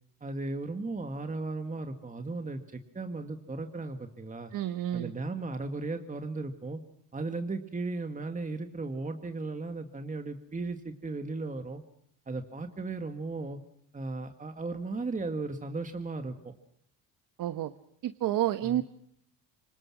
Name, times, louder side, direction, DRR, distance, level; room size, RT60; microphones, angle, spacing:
voice 1, 0.2-4.5 4.9-6.8 7.1-11.8 12.3-13.6 13.9-16.5 18.6-18.8, right 3 dB, 20° right, 6 dB, 1.9 m, -36 dB
voice 2, 4.5-5.1 17.4-17.7 18.0-18.8, right 13 dB, 65° right, 11 dB, 1.2 m, -29 dB
26.5 x 23.0 x 6.1 m, 0.69 s
supercardioid pair, 90°, 36 cm